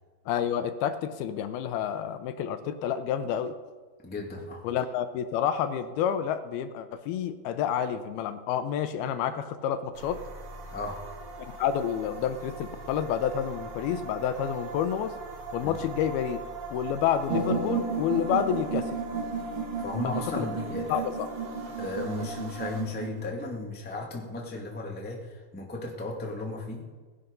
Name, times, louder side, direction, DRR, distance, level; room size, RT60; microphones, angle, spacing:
voice 1, 0.3-3.5 4.6-10.2 11.6-15.1 15.5-16.4 16.7-19.0 20.0-20.5 20.9-21.3, left 9 dB, 80° left, 10 dB, 2.5 m, -29 dB
voice 2, 4.0-4.6 10.7-11.0 15.6-15.8 19.8-21.1 21.8-26.9, left 2 dB, 10° left, -1 dB, 0.4 m, -35 dB
sound 1, 9.9-22.8, right 3 dB, 75° right, 3.8 m, -41 dB
sound 2, 17.3-23.2, right 5 dB, 50° right, 3.0 m, -33 dB
18.0 x 11.0 x 5.3 m, 1.3 s
omnidirectional pair, 4.7 m